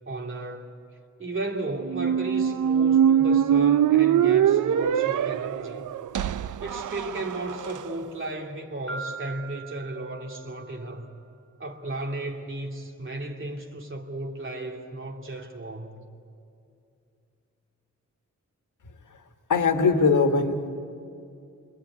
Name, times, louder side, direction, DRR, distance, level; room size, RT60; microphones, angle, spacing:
voice 1, 0.1-0.7 1.2-5.9 6.6-11.1 11.6-16.0, right 2 dB, 40° right, 2.5 m, -34 dB
Squeak, 1.9-7.8, right 9 dB, 80° right, 0.6 m, -22 dB
Piano, 8.9-10.8, right 4 dB, 60° left, 3.2 m, -40 dB
voice 2, 19.5-20.7, left 4 dB, 80° left, 1.7 m, -21 dB
27.0 x 23.0 x 9.6 m
wide cardioid pair, 155°, 30 cm